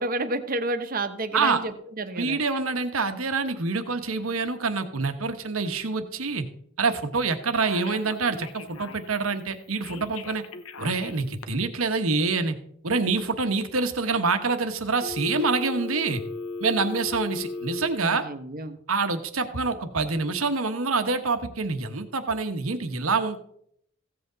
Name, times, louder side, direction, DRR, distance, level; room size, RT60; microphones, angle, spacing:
voice 1, 0.0-2.4 18.0-18.8, right 2 dB, 45° right, 9 dB, 1.0 m, -30 dB
voice 2, 2.2-6.4 6.8-10.4 10.8-12.6 12.8-16.2 16.6-18.2 18.9-23.4, right 4 dB, 90° right, 9 dB, 1.2 m, -26 dB
Telephone, 7.5-9.2 9.8-11.4 15.0-17.9, left 4 dB, 85° left, 0.9 m, -36 dB
15.5 x 7.9 x 4.0 m, 0.68 s
head